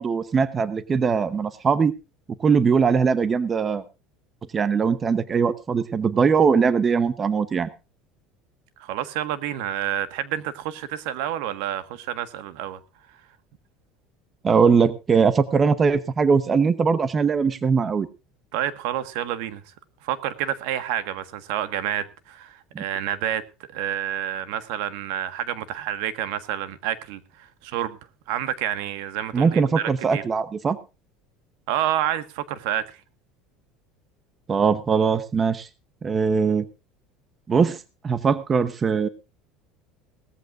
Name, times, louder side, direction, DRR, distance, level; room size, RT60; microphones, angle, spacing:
voice 1, 0.0-1.9 2.4-3.8 4.5-7.7 14.4-18.1 22.7-22.8 29.3-30.8 34.5-35.7 36.0-36.7 37.5-37.8 38.0-39.1, right 5 dB, 20° right, 0.8 m, -21 dB
voice 2, 8.8-12.8 18.5-19.6 20.0-23.4 23.7-28.0 28.3-30.2 31.7-33.0, right 11 dB, 70° right, 1.5 m, -29 dB
18.5 x 14.5 x 2.5 m
cardioid pair, 145°, 0 cm